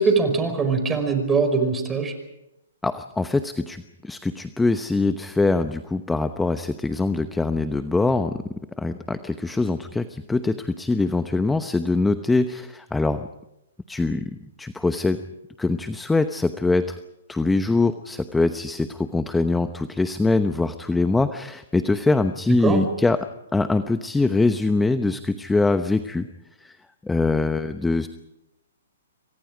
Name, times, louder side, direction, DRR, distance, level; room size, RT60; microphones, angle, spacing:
voice 1, 0.0-2.1 22.5-22.8, right 4 dB, 15° right, 6 dB, 5.2 m, -22 dB
voice 2, 2.8-8.4 8.8-13.3 13.9-14.2 14.6-15.2 15.6-17.0 17.3-23.2 23.5-26.3 26.6-26.7 27.0-28.1, left 3 dB, 5° left, 9 dB, 0.9 m, -23 dB
27.5 x 25.0 x 5.1 m, 0.90 s
hypercardioid pair, 140°, 0 cm